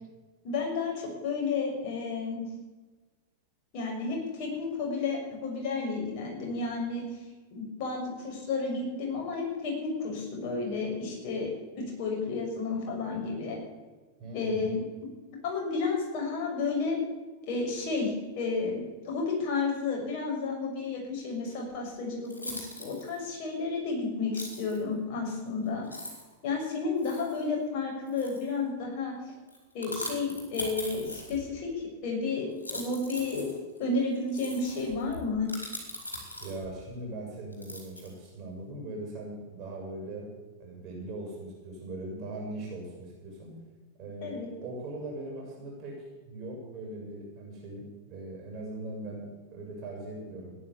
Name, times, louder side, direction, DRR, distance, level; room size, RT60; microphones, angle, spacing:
voice 1, 0.4-2.4 3.7-7.0 7.5-13.6 14.3-14.8 15.4-17.0 17.4-25.9 26.4-29.1 29.7-33.5 33.8-35.5 44.2-44.5, left 4 dB, 45° left, -1 dB, 6.8 m, -32 dB
voice 2, 14.2-14.7 36.4-40.3 40.6-43.6 44.0-50.6, right 2 dB, 35° right, -1 dB, 6.9 m, -40 dB
sound 1, 21.7-21.8 22.3-23.2 24.3-24.8 25.5-25.6 25.8-26.3 27.0-27.4 28.1-28.6 29.5-31.6 32.5-36.8 37.5-38.3, left 1 dB, 85° left, 4.6 m, -41 dB
16.5 x 10.5 x 8.5 m, 1.3 s
figure-of-eight pair, 90°, 0 cm